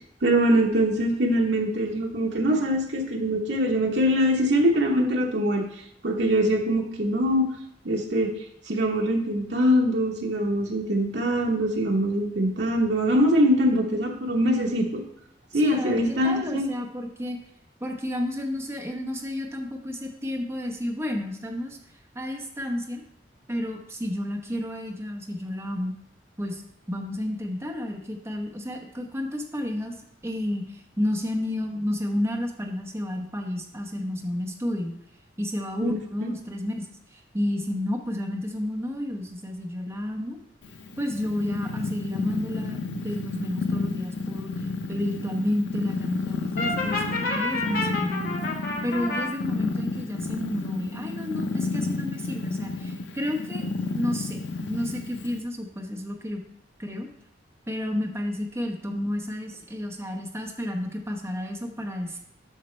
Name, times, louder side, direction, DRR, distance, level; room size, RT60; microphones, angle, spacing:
voice 1, 0.2-5.6 6.0-7.5 7.8-8.3 8.7-15.0 15.5-16.6 35.8-36.3, equal, 70° right, 0 dB, 1.0 m, -23 dB
voice 2, 15.5-17.4 17.8-21.8 22.1-23.0 23.5-25.9 26.4-26.6 26.9-29.9 30.2-34.9 35.4-36.9 37.3-40.4 41.0-44.5 44.9-48.4 48.8-56.4 56.8-57.1 57.7-62.2, left 1 dB, 15° right, 2 dB, 0.9 m, -31 dB
Purr, 40.6-55.4, left 3 dB, 75° left, 0.7 m, -31 dB
Brass instrument, 46.6-49.3, left 3 dB, 55° left, 1.4 m, -29 dB
8.5 x 5.8 x 3.2 m, 0.73 s
head